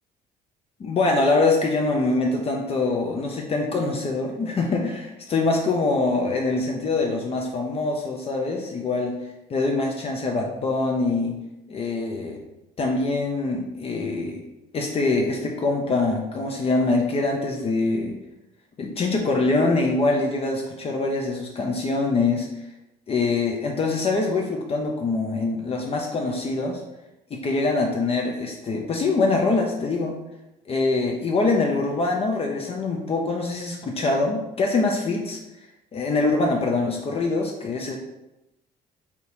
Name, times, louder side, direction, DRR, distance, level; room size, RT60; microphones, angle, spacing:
voice 1, 0.8-9.2 9.5-11.4 11.7-12.4 12.8-14.4 14.7-18.2 18.8-22.5 23.1-26.8 27.3-30.1 30.7-35.4 35.9-38.0, left 3 dB, 35° left, 1 dB, 0.6 m, -24 dB
3.5 x 2.8 x 4.3 m, 0.91 s
cardioid pair, 110°, 17 cm